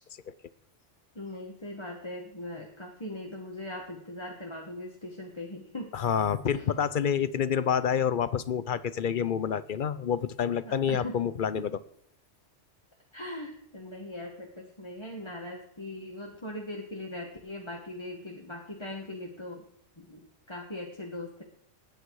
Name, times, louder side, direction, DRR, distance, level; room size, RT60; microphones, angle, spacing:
voice 1, 1.1-5.9 6.5-6.7 10.5-11.3 13.1-19.7 20.0-21.4, left 1 dB, 25° left, 0 dB, 1.5 m, -40 dB
voice 2, 5.9-11.7, left 8 dB, 55° left, 16 dB, 0.7 m, -28 dB
20.0 x 9.0 x 4.7 m, 0.72 s
omnidirectional pair, 1.2 m